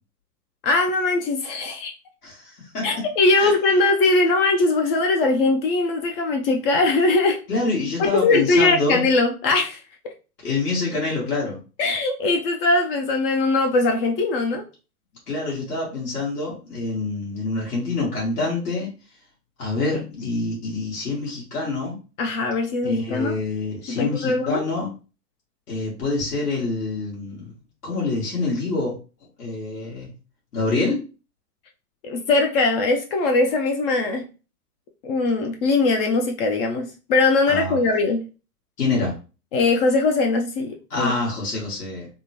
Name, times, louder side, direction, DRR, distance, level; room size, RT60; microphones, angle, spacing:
voice 1, 0.6-1.9 2.8-7.4 8.0-9.8 11.8-14.6 22.2-23.4 23.9-24.6 32.0-34.3 35.0-38.2 39.5-41.1, left 3 dB, 40° left, 4 dB, 0.5 m, -21 dB
voice 2, 2.2-2.9 3.4-3.5 7.5-9.1 10.4-11.6 15.3-18.9 19.6-22.0 22.8-24.9 25.7-27.5 27.8-28.9 29.4-30.1 30.5-31.0 37.5-37.8 38.8-39.1 40.9-42.1, left 3 dB, 75° left, -4 dB, 1.6 m, -26 dB
3.5 x 2.1 x 2.8 m, 0.33 s
hypercardioid pair, 105°, 47 cm